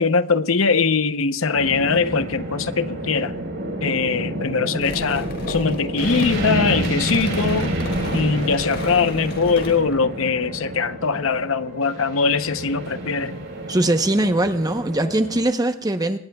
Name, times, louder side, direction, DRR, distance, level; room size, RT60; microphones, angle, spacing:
voice 1, 0.0-3.3 3.8-7.7 8.1-13.3, left 5 dB, 80° left, 0.8 m, -21 dB
sound 1, 1.5-15.4, right 1 dB, 65° right, 4.2 m, -29 dB
sound 2, 4.8-10.0, left 1 dB, 55° left, 4.6 m, -33 dB
voice 2, 13.7-16.2, right 1 dB, 20° right, 0.9 m, -21 dB
25.0 x 19.5 x 2.4 m
head